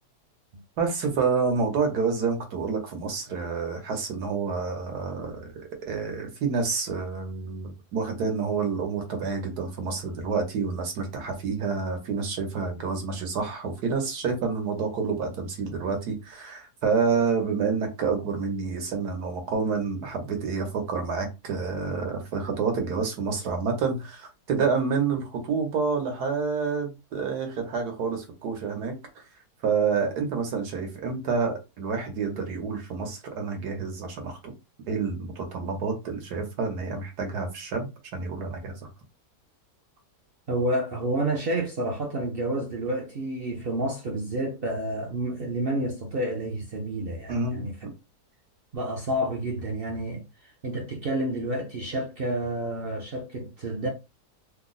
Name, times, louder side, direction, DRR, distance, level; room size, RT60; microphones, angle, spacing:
voice 1, 0.8-28.9 29.6-34.5 34.9-38.8 47.3-47.7, right 5 dB, 85° right, 1.5 m, -28 dB
voice 2, 40.5-47.8 48.7-50.2 50.6-53.9, right 1 dB, 55° right, 0.6 m, -29 dB
3.4 x 2.0 x 3.8 m
omnidirectional pair, 1.7 m